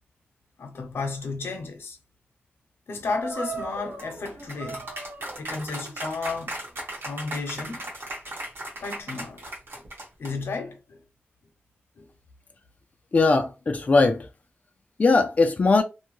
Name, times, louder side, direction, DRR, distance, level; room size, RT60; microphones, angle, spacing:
voice 1, 0.6-2.0 2.9-4.9 5.2-6.6 7.0-7.9 8.8-9.5 9.7-9.8 10.2-11.0 12.0-12.1, left 4 dB, 85° left, 0.7 m, -33 dB
sound 1, 3.1-10.5, right 2 dB, 75° right, 1.1 m, -36 dB
voice 2, 13.1-14.3 15.0-15.8, left 3 dB, 40° left, 0.4 m, -20 dB
2.7 x 2.2 x 3.0 m
wide cardioid pair, 110°, 4 cm